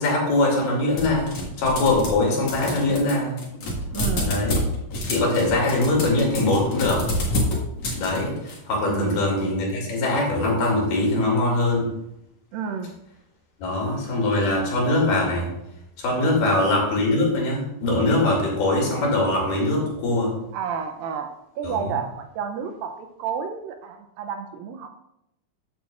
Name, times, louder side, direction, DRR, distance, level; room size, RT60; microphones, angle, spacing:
voice 1, 0.0-3.3 4.3-4.6 5.1-7.0 8.0-11.9 13.6-15.5 16.0-20.3 21.6-21.9, left 2 dB, 85° left, -2 dB, 4.4 m, -22 dB
sound 1, 1.0-2.2 2.5-8.6, left 1 dB, 50° left, 2.5 m, -27 dB
voice 2, 3.9-4.3 8.9-9.2 12.5-12.9 16.4-16.6 20.5-21.3 21.6-24.9, right 7 dB, 80° right, 6 dB, 2.3 m, -31 dB
13.5 x 7.1 x 2.5 m, 0.84 s
omnidirectional pair, 4.3 m